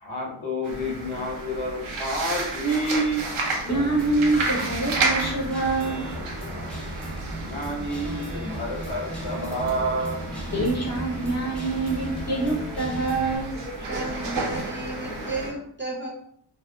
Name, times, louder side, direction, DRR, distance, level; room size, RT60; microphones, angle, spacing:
voice 1, 0.0-3.3 5.8-6.9 7.4-10.2, right 1 dB, 70° left, -2 dB, 0.9 m, -29 dB
sound 1, 0.6-15.5, right 3 dB, 80° right, 0.6 m, -32 dB
voice 2, 3.6-6.1 10.5-13.5, right 2 dB, 35° left, -2 dB, 0.8 m, -25 dB
Guitar, 3.7-13.4, right 1 dB, ahead, 0.8 m, -37 dB
sound 2, 7.9-13.5, left 1 dB, 90° left, 1.2 m, -40 dB
voice 3, 13.5-16.1, right 2 dB, 25° right, -3 dB, 0.6 m, -34 dB
2.9 x 2.0 x 2.2 m, 0.68 s
wide cardioid pair, 75°, 48 cm